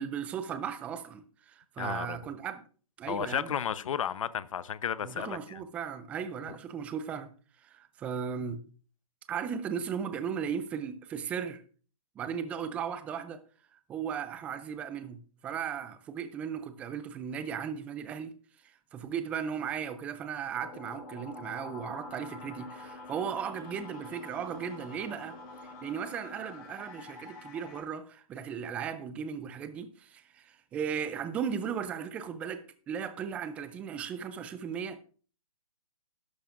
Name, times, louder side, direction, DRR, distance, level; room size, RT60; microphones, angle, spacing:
voice 1, 0.0-2.6 3.0-3.5 5.0-7.3 7.6-8.6 9.3-11.6 12.2-13.4 13.7-18.3 18.6-25.4 25.8-35.0, right 7 dB, 5° right, 0.3 m, -36 dB
voice 2, 1.8-2.2 3.1-5.6, left 8 dB, 60° left, 0.7 m, -33 dB
sound 1, 20.5-27.8, left 2 dB, 35° left, 6.2 m, -46 dB
11.5 x 11.5 x 2.5 m
hypercardioid pair, 150°, 19 cm